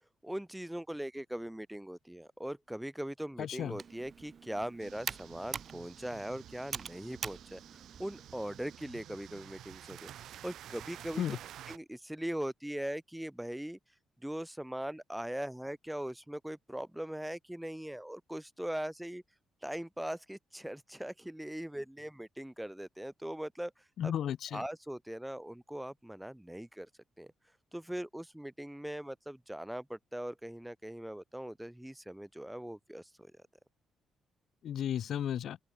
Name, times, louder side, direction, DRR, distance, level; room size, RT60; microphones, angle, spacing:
voice 1, 0.2-10.1 10.4-11.2 11.7-13.8 14.2-19.2 19.6-23.7 24.0-24.1 24.5-26.9 27.2-27.3 27.7-33.3, right 1 dB, 5° right, 3.1 m, -40 dB
voice 2, 3.4-3.7 11.2-11.4 24.0-24.6 34.6-35.6, left 10 dB, 65° left, 1.0 m, -34 dB
Computer keyboard, 3.6-8.8, right 6 dB, 45° right, 0.9 m, -44 dB
sound 1, 4.8-11.8, right 11 dB, 75° right, 1.9 m, -51 dB
open air
cardioid pair, 90°, 0 cm